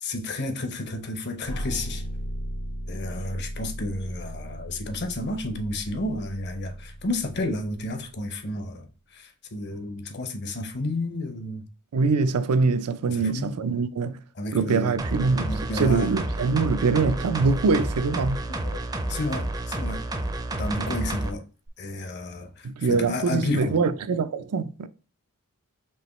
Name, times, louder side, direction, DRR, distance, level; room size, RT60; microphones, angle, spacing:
voice 1, 0.0-2.0 2.9-8.9 9.1-11.6 13.1-13.8 14.4-15.0 15.5-16.2 18.5-18.8 19.1-20.0 20.5-21.4 21.8-23.8, left 2 dB, 50° left, 0.8 m, -31 dB
sound 1, 1.4-8.4, equal, 85° left, 1.4 m, -36 dB
voice 2, 11.9-14.2 14.5-18.4 22.6-24.9, right 4 dB, 85° right, 0.4 m, -24 dB
sound 2, 15.0-21.3 21.7-21.8, right 1 dB, 20° right, 0.4 m, -30 dB
4.7 x 3.0 x 3.0 m
head